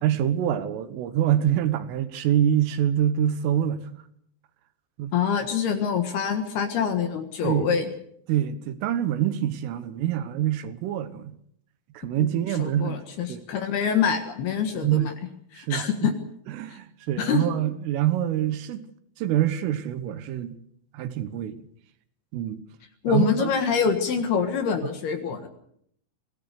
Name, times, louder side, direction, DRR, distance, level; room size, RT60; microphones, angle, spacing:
voice 1, 0.0-4.0 5.0-5.1 7.4-7.7 8.3-11.4 12.0-13.0 13.3-13.4 14.7-15.1 15.6-16.1 16.5-18.8 19.2-20.6 20.9-21.7 22.3-22.6 23.1-23.5, right 11 dB, 75° right, 3.7 m, -25 dB
voice 2, 5.1-7.9 12.2-12.3 12.6-15.1 15.5-16.1 17.2-17.4 23.0-25.5, left 7 dB, 65° left, 3.0 m, -25 dB
24.5 x 17.5 x 6.7 m
omnidirectional pair, 5.9 m